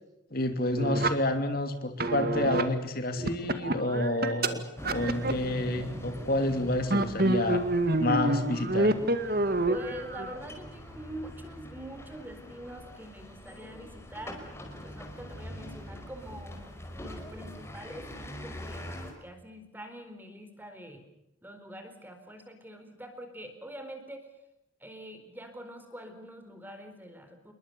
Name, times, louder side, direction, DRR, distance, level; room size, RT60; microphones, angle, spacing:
voice 1, 0.3-4.6 4.9-7.7 8.0-8.9, left 1 dB, 50° left, 7 dB, 2.9 m, -29 dB
sound 1, 0.8-1.1 2.0-2.6 3.2-4.5 4.8-6.5 6.8-10.3, right 1 dB, 50° right, 2.2 m, -28 dB
sound 2, 4.8-19.1, equal, 15° left, 5.0 m, -44 dB
voice 2, 9.7-14.5 14.8-16.6 17.0-18.9 19.2-21.0 21.4-24.3 24.8-27.5, equal, 10° right, 7 dB, 4.3 m, -44 dB
28.5 x 22.0 x 6.9 m, 0.86 s
head